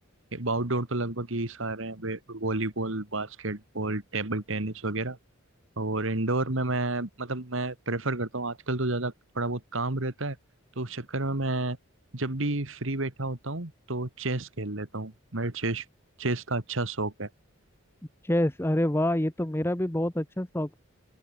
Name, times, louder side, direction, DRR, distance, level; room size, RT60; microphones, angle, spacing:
voice 1, 0.3-5.2 5.8-10.4 10.8-11.8 12.1-15.9 16.2-17.3, right 2 dB, 65° right, 2.1 m, -30 dB
voice 2, 18.3-20.8, left 1 dB, 10° left, 0.9 m, -26 dB
open air
head